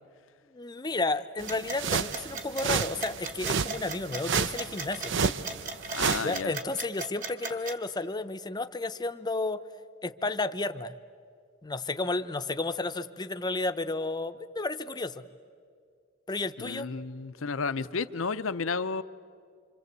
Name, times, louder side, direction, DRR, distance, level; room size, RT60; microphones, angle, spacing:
voice 1, 0.5-5.1 6.2-9.6 10.0-10.9 11.6-15.2 16.3-16.9, left 2 dB, 20° left, 10 dB, 0.7 m, -32 dB
sound 1, 1.4-6.4, right 6 dB, 65° right, 0.7 m, -31 dB
sound 2, 1.5-7.7, right 3 dB, 40° right, 2.1 m, -36 dB
voice 2, 5.9-6.5 16.6-19.0, left 4 dB, 75° left, 13 dB, 0.7 m, -32 dB
26.5 x 26.0 x 8.1 m, 2.2 s
head